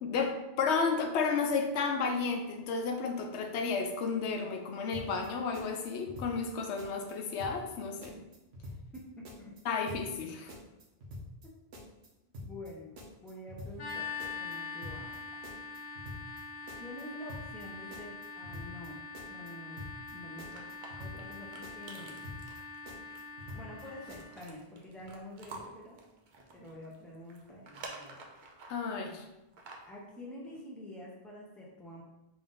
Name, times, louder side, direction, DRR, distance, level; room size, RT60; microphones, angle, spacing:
voice 1, 0.0-8.1 9.7-10.5 28.7-29.2, left 5 dB, 85° left, 4 dB, 0.9 m, -32 dB
sound 1, 4.9-5.3 5.5-6.5 6.8-7.1 7.4-7.8 8.0-9.0 9.2-9.6 9.9-10.2 10.5-11.5 11.7-12.1 12.3-12.7 13.0-13.9 14.2-14.6 14.8-15.2 15.4-16.4 16.7-17.0 17.3-17.7 17.9-18.9 19.1-19.5 19.8-20.1 20.4-21.4 21.6-22.0 22.2-22.6 22.9-23.8 24.1-24.5, left 1 dB, 75° right, 1.0 m, -46 dB
voice 2, 8.9-9.6 12.5-15.5 16.8-19.8 20.1-22.3 22.8-23.0 23.5-26.0 26.5-28.4 29.9-32.0, left 1 dB, ahead, -3 dB, 0.5 m, -48 dB
sound 2, 13.8-24.4, left 4 dB, 50° left, 0.7 m, -44 dB
sound 3, 20.5-28.9 29.4-30.0, right 3 dB, 55° right, 0.7 m, -50 dB
3.7 x 2.6 x 3.7 m, 0.94 s
omnidirectional pair, 1.1 m